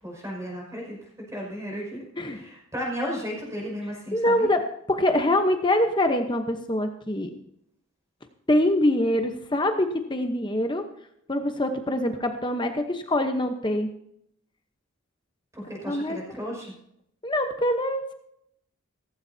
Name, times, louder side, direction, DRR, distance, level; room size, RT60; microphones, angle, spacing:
voice 1, 0.0-1.0 1.3-4.5 15.5-16.7, equal, 15° right, -1 dB, 5.7 m, -34 dB
voice 2, 4.1-4.6 4.9-7.3 8.5-10.8 11.3-13.9 15.9-16.2 17.2-18.1, left 1 dB, 20° left, 6 dB, 0.9 m, -24 dB
17.0 x 15.5 x 2.8 m, 0.74 s
head